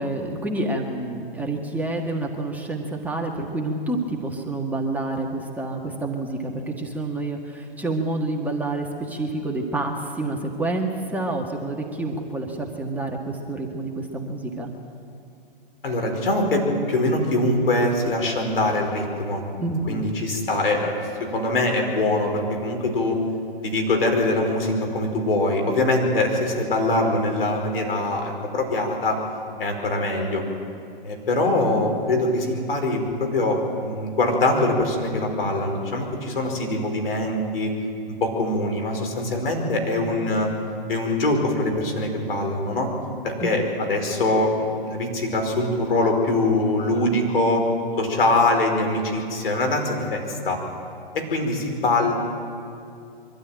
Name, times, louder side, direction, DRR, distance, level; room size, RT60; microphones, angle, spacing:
voice 1, 0.0-14.7 19.6-20.1 43.4-43.6, right 2 dB, 5° right, -1 dB, 1.6 m, -28 dB
voice 2, 15.8-19.4 19.9-23.2 23.6-29.2 29.6-30.4 31.0-37.7 38.2-40.5 40.9-42.9 43.2-44.5 44.8-47.7 48.0-50.6 51.1-52.1, left 2 dB, 75° left, 2 dB, 5.1 m, -23 dB
23.5 x 13.0 x 9.1 m, 2.5 s
hypercardioid pair, 130°, 29 cm